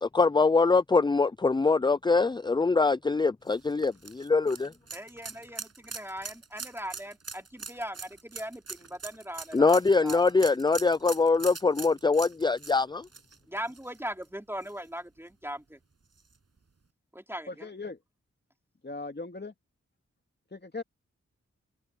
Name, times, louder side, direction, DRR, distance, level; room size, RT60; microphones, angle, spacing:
voice 1, 0.0-4.7 9.5-13.1, left 4 dB, 15° left, 0.4 m, -23 dB
sound 1, 3.5-14.2 14.6-14.7 16.2-16.3, right 4 dB, 60° right, 6.6 m, -42 dB
voice 2, 4.9-10.2 13.5-15.8 17.1-17.7, equal, 10° right, 4.1 m, -39 dB
voice 3, 17.5-18.0 18.8-19.5 20.5-20.8, left 3 dB, 35° left, 2.6 m, -38 dB
cardioid pair, 45°, 29 cm